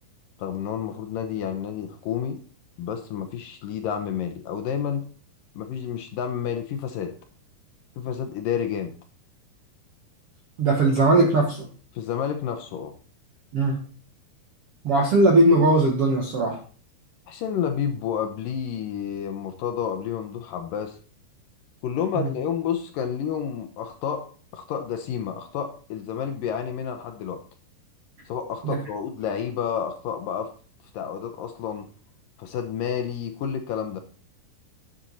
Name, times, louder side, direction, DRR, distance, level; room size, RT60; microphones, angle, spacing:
voice 1, 0.4-2.4 2.8-5.1 5.6-7.2 8.0-8.9 11.9-12.9 17.3-21.0 21.8-27.5 28.3-30.6 30.9-31.9 32.4-34.0, left 8 dB, 70° left, 7 dB, 2.2 m, -30 dB
voice 2, 10.6-11.7 13.5-13.8 14.8-16.6 22.2-22.3 28.6-28.8, right 2 dB, 55° right, 1 dB, 1.6 m, -19 dB
10.5 x 7.9 x 4.1 m, 0.39 s
omnidirectional pair, 4.7 m